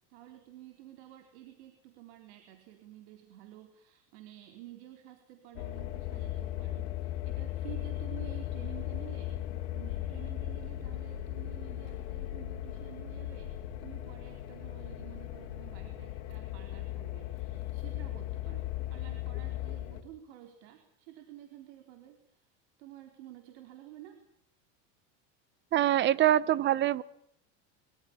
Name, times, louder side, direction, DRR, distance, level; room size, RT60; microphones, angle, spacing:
voice 1, 0.1-9.4 9.7-22.5 22.8-24.2, right 13 dB, 75° right, 6 dB, 4.4 m, -51 dB
sound 1, 5.6-20.0, left 13 dB, 85° left, 3.6 m, -37 dB
voice 2, 25.7-27.0, right 12 dB, 35° right, 20 dB, 1.1 m, -24 dB
25.0 x 24.5 x 7.4 m, 0.71 s
supercardioid pair, 145°, 34 cm